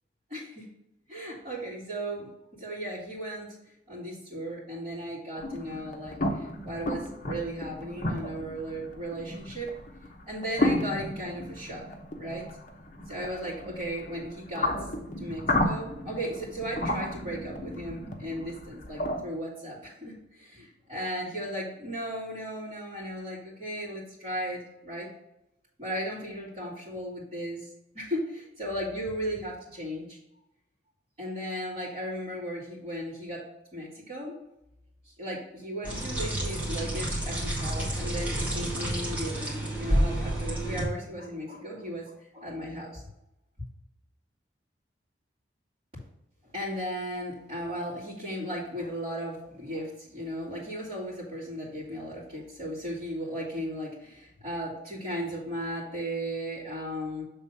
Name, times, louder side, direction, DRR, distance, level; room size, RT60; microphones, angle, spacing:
voice 1, 0.3-0.6 1.1-3.5 3.9-9.7 10.3-11.8 12.2-12.5 13.1-14.7 15.2-25.1 25.8-27.7 27.9-30.2 31.2-33.4 33.7-34.4 35.2-43.0 46.5-57.2, equal, 35° right, -11 dB, 2.3 m, -36 dB
sound 1, 5.4-19.2, left 1 dB, 45° left, 0.8 m, -33 dB
sound 2, 35.8-40.8, right 1 dB, 10° right, 1.7 m, -29 dB
7.0 x 3.6 x 5.5 m, 0.86 s
head